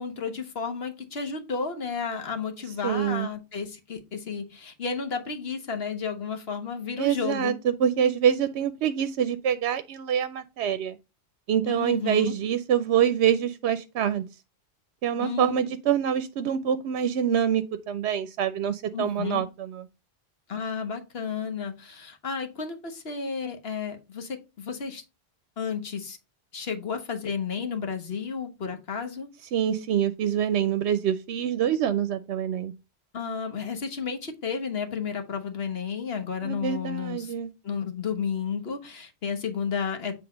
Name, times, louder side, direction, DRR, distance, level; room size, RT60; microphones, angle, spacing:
voice 1, 0.0-7.6 11.7-12.4 15.2-15.6 18.9-19.4 20.5-25.0 25.6-26.2 26.5-29.3 33.1-37.3 37.6-40.2, left 6 dB, 65° left, 1.4 m, -32 dB
voice 2, 2.8-3.3 7.0-11.0 11.5-14.3 15.0-19.8 29.5-32.7 36.4-37.5, right 9 dB, 85° right, 0.9 m, -25 dB
7.9 x 3.4 x 5.0 m
omnidirectional pair, 1.1 m